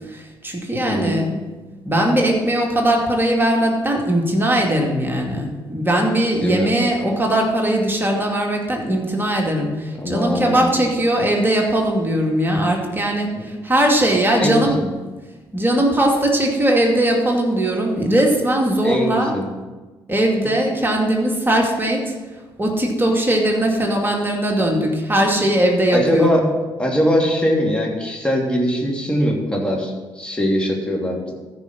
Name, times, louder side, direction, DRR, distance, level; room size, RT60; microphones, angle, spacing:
voice 1, 0.1-1.3 1.8-14.8 15.5-19.3 20.1-22.1 22.6-26.3, right 1 dB, 15° right, 0 dB, 2.4 m, -19 dB
voice 2, 0.8-1.2 6.4-6.7 10.0-10.8 13.3-13.4 14.4-14.9 18.8-19.5 25.9-26.4 26.8-31.3, equal, 5° left, -2 dB, 2.9 m, -21 dB
14.5 x 5.0 x 6.1 m, 1.3 s
figure-of-eight pair, 40°, 13 cm